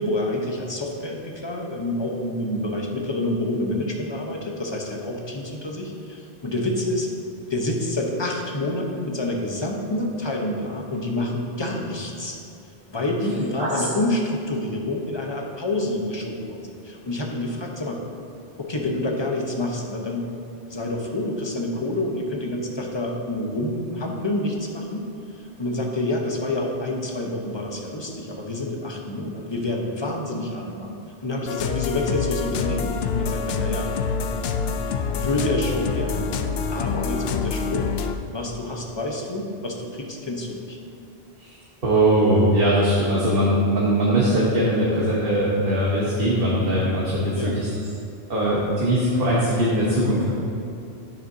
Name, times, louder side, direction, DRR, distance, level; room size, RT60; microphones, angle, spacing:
voice 1, 0.0-7.1 7.5-12.4 12.9-18.0 18.6-20.3 20.7-25.1 25.3-31.0 31.2-33.9 35.1-36.3 36.7-37.9 38.3-40.8 47.3-47.6, left 1 dB, 25° left, 0 dB, 1.0 m, -28 dB
sound 1, 31.5-38.1, left 5 dB, 70° left, 0.8 m, -26 dB
voice 2, 41.8-47.7 48.3-50.3, right 1 dB, 60° right, -6 dB, 1.4 m, -21 dB
10.5 x 9.2 x 2.8 m, 2.6 s
omnidirectional pair, 1.1 m